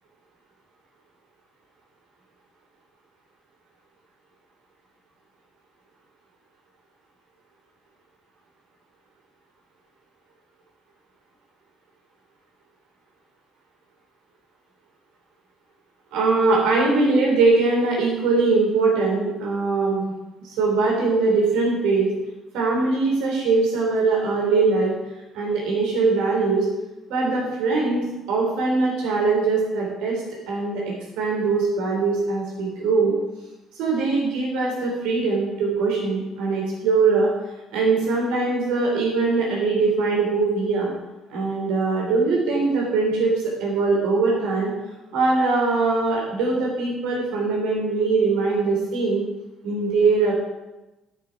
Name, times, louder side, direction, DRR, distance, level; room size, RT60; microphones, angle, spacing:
voice 1, 16.1-20.1 20.4-22.1 22.5-24.9 25.3-26.7 27.1-33.2 33.8-37.3 37.7-40.9 41.3-43.3 43.6-44.7 45.1-49.2 49.6-50.3, right 3 dB, 65° right, -2 dB, 3.6 m, -21 dB
9.3 x 9.2 x 4.9 m, 1.0 s
figure-of-eight pair, 50°, 0 cm